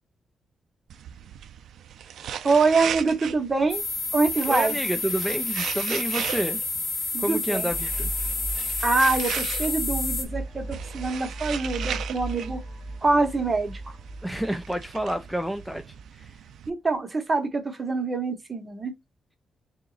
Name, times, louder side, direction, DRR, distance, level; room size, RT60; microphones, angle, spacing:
sound 1, 0.9-16.7, right 9 dB, 85° right, 0.3 m, -38 dB
voice 1, 2.4-3.8 4.1-4.8 7.1-7.7 8.8-12.6 13.0-14.0 16.7-18.9, right 3 dB, 20° right, 0.9 m, -25 dB
sound 2, 3.7-10.2, left 3 dB, 45° left, 1.4 m, -30 dB
voice 2, 4.5-6.6 7.2-8.1 14.2-16.4, right 1 dB, ahead, 0.3 m, -29 dB
sound 3, 7.7-16.3, right 1 dB, 30° left, 0.8 m, -37 dB
3.7 x 2.9 x 3.8 m
wide cardioid pair, 175°, 0 cm